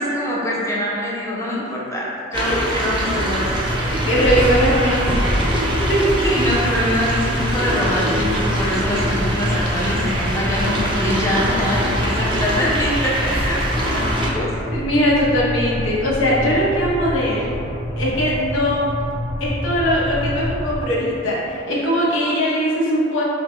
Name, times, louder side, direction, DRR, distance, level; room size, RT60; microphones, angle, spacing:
voice 1, 0.0-3.7 6.2-14.5, left 1 dB, 15° left, -5 dB, 0.6 m, -24 dB
sound 1, 2.3-14.3, right 1 dB, 25° right, 0.5 m, -23 dB
sound 2, 3.4-20.8, left 1 dB, 65° left, 1.3 m, -28 dB
voice 2, 3.8-5.3 5.9-6.2 14.7-17.6 18.0-18.9 19.4-23.2, equal, 85° left, -6 dB, 0.9 m, -20 dB
5.1 x 2.1 x 3.1 m, 2.5 s
head